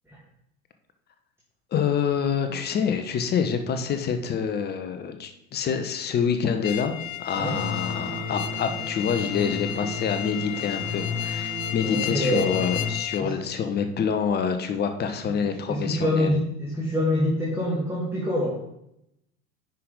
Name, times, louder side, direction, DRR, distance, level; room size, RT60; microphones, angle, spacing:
voice 1, 1.7-16.3, left 7 dB, 25° left, 7 dB, 0.8 m, -27 dB
sound 1, 6.6-13.2, left 12 dB, 65° left, 0.7 m, -33 dB
sound 2, 7.4-12.9, left 3 dB, 30° right, 2.8 m, -34 dB
voice 2, 11.8-12.7 13.2-13.3 15.7-18.6, left 1 dB, 5° right, -5 dB, 1.9 m, -25 dB
9.7 x 5.3 x 4.0 m, 0.80 s
figure-of-eight pair, 85°, 43 cm